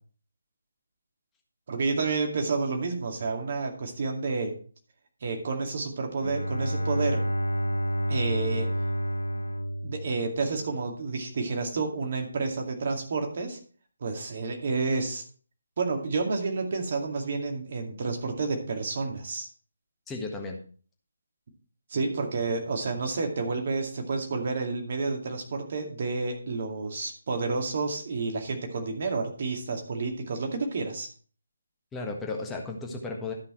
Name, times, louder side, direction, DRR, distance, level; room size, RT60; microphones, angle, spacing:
voice 1, 1.7-4.5 5.2-7.2 8.1-8.7 9.8-13.6 14.0-15.2 15.8-19.5 21.9-31.1, right 3 dB, 40° right, 3 dB, 2.2 m, -30 dB
Bowed string instrument, 6.2-10.9, equal, 75° left, 0.6 m, -29 dB
voice 2, 20.1-20.6 31.9-33.3, left 3 dB, 10° left, 0 dB, 1.5 m, -34 dB
13.0 x 5.7 x 4.3 m, 0.42 s
figure-of-eight pair, 150°, 0 cm